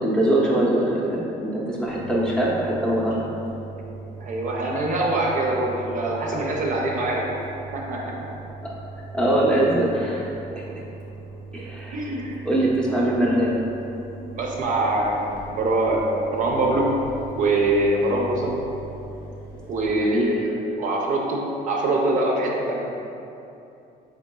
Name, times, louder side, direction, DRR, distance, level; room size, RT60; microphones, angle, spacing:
voice 1, 0.0-3.2 9.1-10.7 11.5-12.0 12.4-13.5 20.0-20.4, right 1 dB, 5° left, -6 dB, 0.6 m, -22 dB
Engine, 1.8-19.9, right 3 dB, 60° left, 0.6 m, -39 dB
voice 2, 4.2-7.3 7.7-8.3 11.9-12.4 14.4-17.0 17.3-18.5 19.7-22.8, right 2 dB, 50° right, -1 dB, 0.5 m, -24 dB
3.7 x 3.4 x 2.2 m, 2.8 s
cardioid pair, 110°, 17 cm